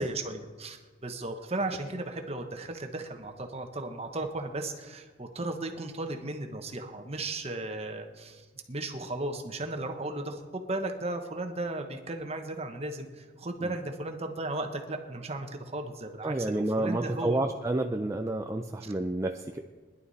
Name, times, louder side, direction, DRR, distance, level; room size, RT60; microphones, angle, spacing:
voice 1, 0.0-17.4 18.8-18.9, right 2 dB, 35° right, 5 dB, 1.2 m, -35 dB
voice 2, 16.2-19.6, right 2 dB, 15° right, 4 dB, 0.5 m, -30 dB
20.5 x 11.0 x 4.2 m, 1.4 s
head